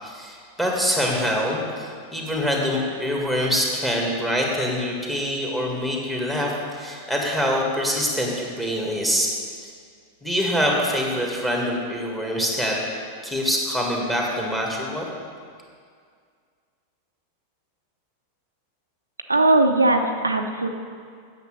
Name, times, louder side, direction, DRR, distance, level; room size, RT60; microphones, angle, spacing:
voice 1, 0.0-9.3 9.6-9.7 10.2-12.8 13.2-15.1, equal, 5° left, -2 dB, 2.0 m, -25 dB
voice 2, 19.3-20.7, right 2 dB, 80° right, 5 dB, 0.6 m, -19 dB
9.3 x 6.7 x 6.4 m, 2.1 s
figure-of-eight pair, 90°, 0 cm